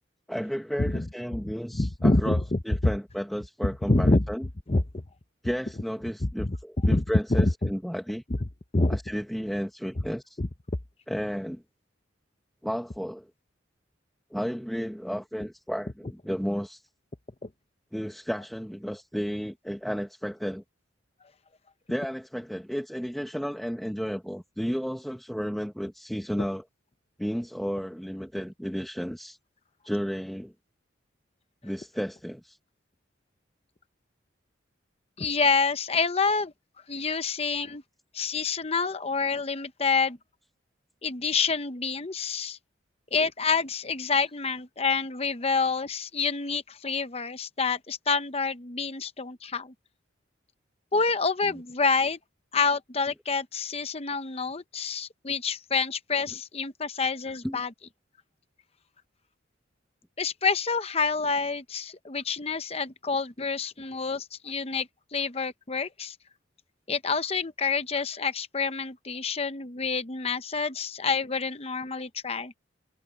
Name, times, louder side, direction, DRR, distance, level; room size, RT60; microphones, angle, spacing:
voice 1, 0.3-4.5 5.4-8.2 8.9-10.4 11.1-11.6 12.6-13.3 14.3-16.8 17.9-20.6 21.9-26.6 27.2-29.4 29.8-30.5 31.6-32.6 57.4-57.6, equal, ahead, 1.0 m, -33 dB
voice 2, 1.7-2.6 3.9-4.3 4.7-5.0 6.2-6.5 6.8-7.0 7.3-7.7 8.7-9.0 10.4-10.5 17.4-17.5 35.2-36.5 36.9-37.8 38.1-40.2 41.0-42.6 43.1-49.7 50.9-52.2 52.5-57.7 60.2-66.1 66.9-72.5, left 4 dB, 30° left, 0.8 m, -27 dB
head